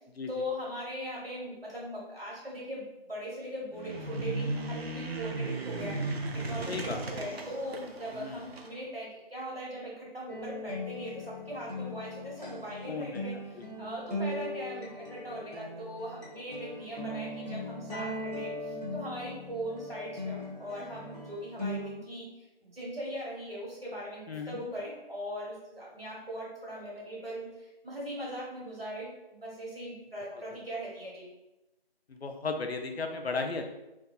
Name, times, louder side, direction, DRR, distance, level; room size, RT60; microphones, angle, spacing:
voice 1, 0.3-31.3, equal, 70° right, -5 dB, 1.3 m, -40 dB
sound 1, 3.7-8.7, right 2 dB, 90° right, 0.5 m, -36 dB
voice 2, 6.7-7.0 8.1-8.4 12.9-13.2 13.6-13.9 24.3-24.6 30.3-30.4 32.1-33.7, left 4 dB, 85° left, 5 dB, 0.5 m, -35 dB
sound 2, 10.3-22.0, left 1 dB, 40° right, 0.5 m, -39 dB
2.7 x 2.3 x 2.3 m, 0.97 s
figure-of-eight pair, 175°, 30 cm